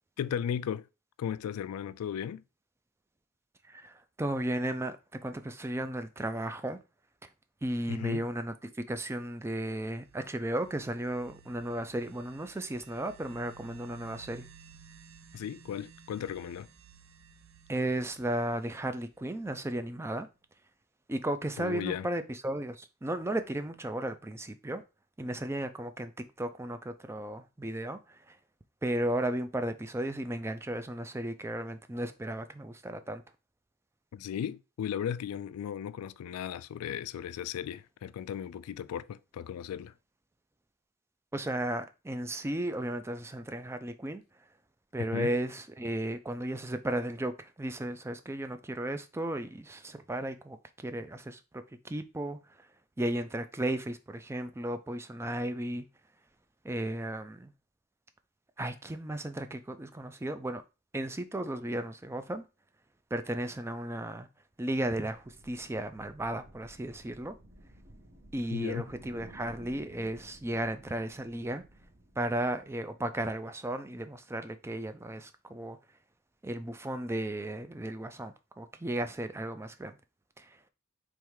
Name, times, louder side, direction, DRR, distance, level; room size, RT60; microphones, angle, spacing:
voice 1, 0.2-0.9 1.2-2.4 7.9-8.3 15.3-16.7 21.6-22.1 34.1-39.9 45.1-45.3 68.5-68.8, left 8 dB, 85° left, 0.3 m, -36 dB
voice 2, 3.6-5.0 5.2-6.8 7.6-14.5 17.7-20.3 21.1-24.8 25.2-26.1 26.4-28.4 28.8-33.2 41.3-44.2 44.9-50.6 50.8-52.7 53.0-55.9 56.6-57.5 58.6-60.6 60.9-62.5 63.1-64.3 64.6-67.4 68.3-71.6 72.2-75.8 76.4-80.0 80.4-80.6, right 1 dB, 10° right, 0.4 m, -35 dB
sound 1, 9.3-19.9, right 7 dB, 80° right, 0.6 m, -56 dB
sound 2, 65.0-73.1, right 1 dB, 35° right, 1.1 m, -55 dB
3.5 x 3.2 x 4.6 m
head